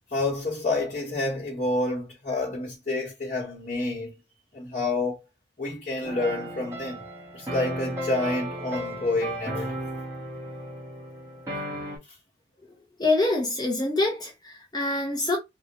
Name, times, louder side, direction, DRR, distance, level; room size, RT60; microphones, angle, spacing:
voice 1, 0.1-4.1 4.5-5.2 5.6-7.0 7.3-9.8, left 2 dB, 40° left, 1.4 m, -28 dB
sound 1, 6.0-12.0, right 1 dB, 15° right, 1.4 m, -35 dB
voice 2, 13.0-15.4, left 2 dB, 20° left, 0.7 m, -25 dB
3.4 x 2.6 x 2.9 m
head